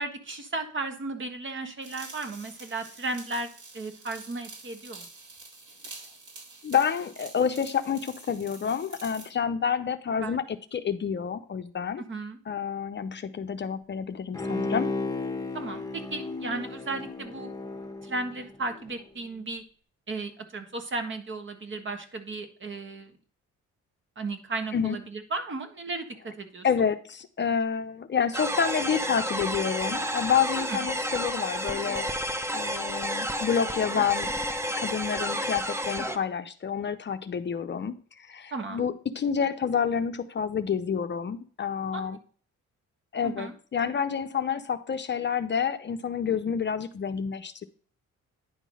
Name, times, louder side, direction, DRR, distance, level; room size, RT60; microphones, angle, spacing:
voice 1, 0.0-3.5 3.7-5.1 10.2-10.4 12.1-12.4 15.5-17.5 18.0-19.6 20.1-23.1 24.2-26.7 30.7-30.9 38.5-38.8 41.9-42.2 43.2-43.5, right 3 dB, 40° right, 7 dB, 1.5 m, -35 dB
sound 1, 1.8-9.3, right 3 dB, 70° right, 3.7 m, -47 dB
voice 2, 6.6-12.0 12.5-14.9 24.7-25.0 26.6-32.1 32.5-34.4 34.8-42.2 43.1-47.6, left 7 dB, 40° left, 9 dB, 0.6 m, -29 dB
Bowed string instrument, 14.3-18.9 19.3-19.4, left 3 dB, 10° left, 1.0 m, -34 dB
sound 2, 28.3-36.2, equal, 10° right, 0.7 m, -31 dB
10.0 x 3.7 x 6.2 m, 0.44 s
cardioid pair, 90°, 30 cm